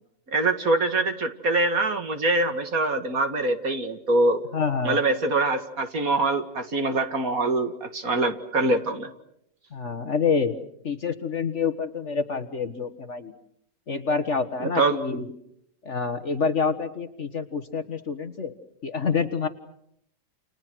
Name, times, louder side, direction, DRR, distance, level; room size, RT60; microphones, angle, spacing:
voice 1, 0.3-4.5 4.8-9.1 14.6-15.0, right 2 dB, 50° right, 7 dB, 2.3 m, -24 dB
voice 2, 4.5-5.0 9.7-10.6 10.8-13.3 13.9-15.3 15.8-18.5 18.8-19.5, left 5 dB, 45° left, 9 dB, 1.5 m, -27 dB
30.0 x 29.0 x 6.2 m, 0.75 s
omnidirectional pair, 1.9 m